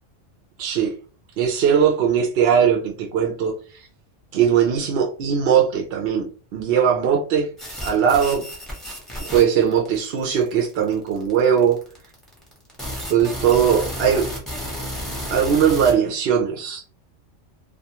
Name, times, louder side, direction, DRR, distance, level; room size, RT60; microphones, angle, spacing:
voice 1, 0.6-0.9 1.4-3.9 4.3-6.2 6.5-7.5 7.8-8.5 9.2-11.8 13.1-14.3 15.3-16.8, right 8 dB, 65° right, 0.7 m, -19 dB
sound 1, 7.6-15.9, equal, ahead, 0.6 m, -32 dB
2.3 x 2.3 x 2.8 m
omnidirectional pair, 1.3 m